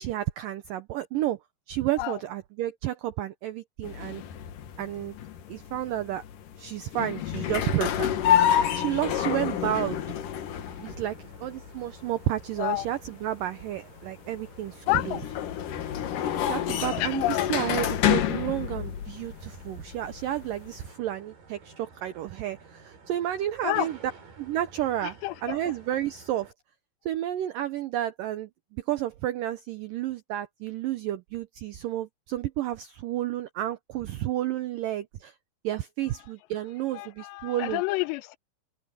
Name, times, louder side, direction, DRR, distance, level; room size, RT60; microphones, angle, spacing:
voice 1, 0.0-1.4 1.7-4.2 4.8-5.2 5.5-6.2 6.6-8.1 8.7-10.0 10.8-15.2 16.4-17.2 17.5-23.9 24.4-25.2 25.4-26.5 27.1-35.3 35.6-37.8, right 13 dB, 90° right, 1.9 m, -31 dB
sound 1, 3.8-20.9, left 10 dB, 60° left, 2.5 m, -29 dB
sound 2, 7.4-26.5, right 4 dB, 55° right, 6.4 m, -52 dB
voice 2, 14.9-15.3 17.0-17.5 23.6-23.9 25.0-25.7 36.9-38.4, left 19 dB, 85° left, 2.8 m, -29 dB
open air
omnidirectional pair, 5.0 m